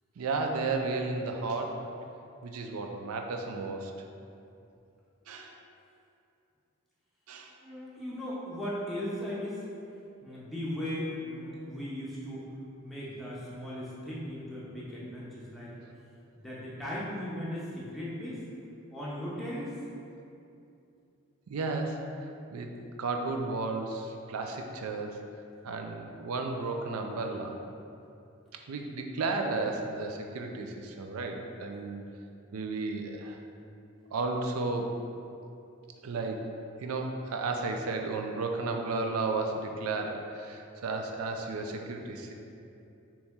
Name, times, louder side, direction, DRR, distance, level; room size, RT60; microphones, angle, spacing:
voice 1, 0.2-1.8 2.4-3.9 5.3-5.5 7.3-7.5 21.5-22.0 22.5-22.7 23.0-25.2 25.6-27.6 28.7-32.0 32.5-33.4 34.1-34.9 36.0-36.4 36.8-42.3, right 3 dB, 90° right, 3 dB, 0.4 m, -33 dB
voice 2, 7.6-9.6 10.2-12.5 12.8-15.7 16.4-18.4 18.9-19.7, left 1 dB, ahead, -8 dB, 0.6 m, -37 dB
4.2 x 2.9 x 3.5 m, 2.6 s
head